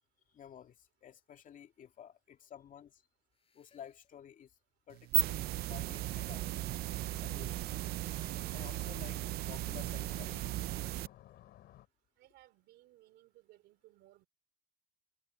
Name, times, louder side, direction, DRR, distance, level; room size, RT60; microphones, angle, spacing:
voice 1, 0.3-3.0 3.5-4.5 4.9-6.4 7.2-7.7 8.5-10.4, left 9 dB, 50° left, 2.4 m, -53 dB
sound 1, 2.4-2.5 3.3-4.2 5.0-5.8 6.7-7.5 8.3-9.2 10.0-10.8, left 6 dB, 35° left, 4.9 m, -70 dB
sound 2, 4.9-11.1, right 17 dB, 65° right, 0.4 m, -36 dB
sound 3, 5.8-11.9, left 14 dB, 75° left, 4.2 m, -56 dB
voice 2, 12.2-14.3, right 16 dB, 85° right, 3.1 m, -62 dB
cardioid pair, 110°, 17 cm